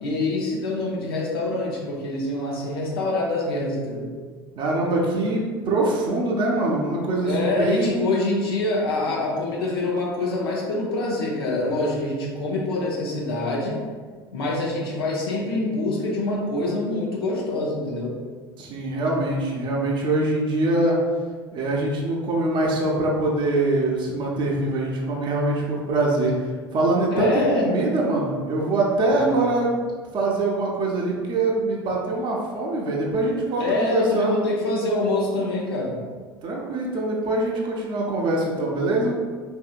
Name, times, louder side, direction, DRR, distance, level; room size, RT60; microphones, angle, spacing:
voice 1, 0.0-4.1 7.2-13.8 14.3-18.2 27.1-27.7 29.1-29.4 33.6-35.9, left 2 dB, 75° left, -3 dB, 0.7 m, -25 dB
voice 2, 4.6-8.0 18.6-21.0 21.5-26.3 26.7-29.8 30.1-34.3 36.4-39.2, right 2 dB, 40° right, -2 dB, 0.7 m, -23 dB
3.5 x 2.7 x 2.4 m, 1.5 s
figure-of-eight pair, 70°, 13 cm